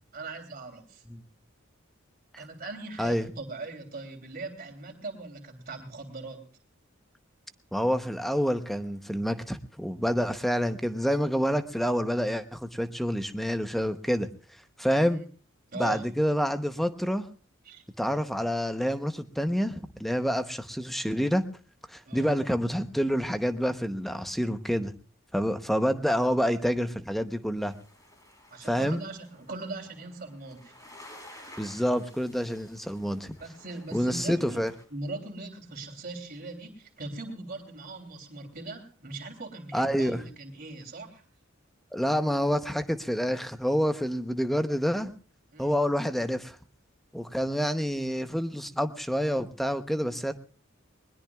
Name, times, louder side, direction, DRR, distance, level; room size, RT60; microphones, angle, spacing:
voice 1, 0.1-1.0 2.4-6.4 15.1-15.2 15.7-16.1 17.6-17.8 22.0-22.4 28.5-30.7 33.4-34.6 34.9-41.2 45.5-45.8, right 3 dB, 45° right, 4 dB, 3.2 m, -40 dB
voice 2, 7.7-14.3 14.8-15.2 15.7-17.3 18.0-21.5 21.9-24.9 25.3-27.7 28.6-29.0 31.6-33.4 33.9-34.7 39.7-40.2 41.9-45.1 45.6-46.6 47.1-50.3, equal, ahead, 9 dB, 0.8 m, -28 dB
sound 1, 27.6-34.8, left 1 dB, 15° left, 3.6 m, -53 dB
20.5 x 20.5 x 2.3 m, 0.39 s
head